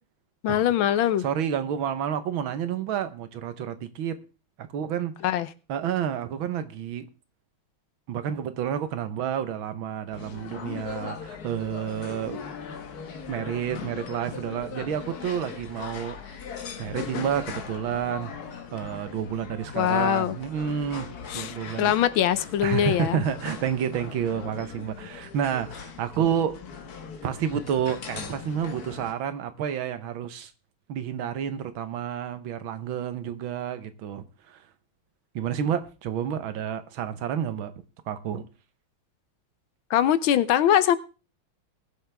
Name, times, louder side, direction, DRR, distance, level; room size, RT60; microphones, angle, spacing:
voice 1, 0.4-1.2 5.2-5.5 19.7-20.3 21.3-23.2 39.9-41.0, left 10 dB, 80° left, 1.6 m, -22 dB
voice 2, 1.2-4.2 4.6-5.1 5.7-7.1 8.1-12.4 13.3-16.4 16.8-18.3 18.7-22.0 22.6-26.6 27.2-30.5 30.9-34.6 35.4-37.7 38.1-38.5, right 8 dB, 80° right, 1.8 m, -30 dB
sound 1, 10.1-29.1, left 6 dB, 55° left, 1.6 m, -39 dB
20.0 x 7.5 x 3.5 m
omnidirectional pair, 2.2 m